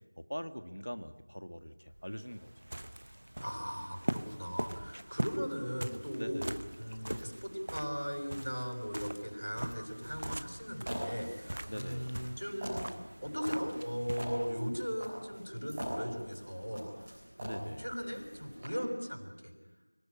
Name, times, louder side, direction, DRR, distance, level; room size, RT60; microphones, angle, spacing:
voice 1, 0.2-2.5 6.2-6.4 11.7-12.2 17.4-17.9, equal, 70° left, 9 dB, 1.8 m, -42 dB
sound 1, 1.9-14.9, right 1 dB, 35° right, 0.9 m, -42 dB
voice 2, 3.4-6.5 6.8-19.5, equal, 85° right, 3 dB, 6.7 m, -38 dB
sound 2, 9.9-18.6, equal, 5° right, 4.2 m, -44 dB
25.0 x 18.0 x 10.0 m, 1.1 s
figure-of-eight pair, 175°, 0 cm